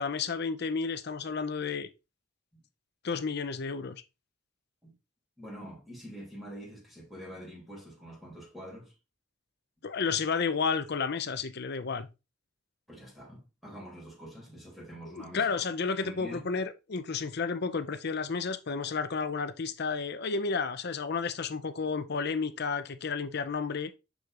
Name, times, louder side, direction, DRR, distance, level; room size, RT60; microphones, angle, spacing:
voice 1, 0.0-1.9 3.0-4.0 9.8-12.1 15.1-23.9, left 5 dB, 55° left, 0.6 m, -32 dB
voice 2, 5.4-8.9 12.9-15.6 16.0-16.4, equal, ahead, 2.8 m, -46 dB
6.4 x 6.3 x 2.5 m
head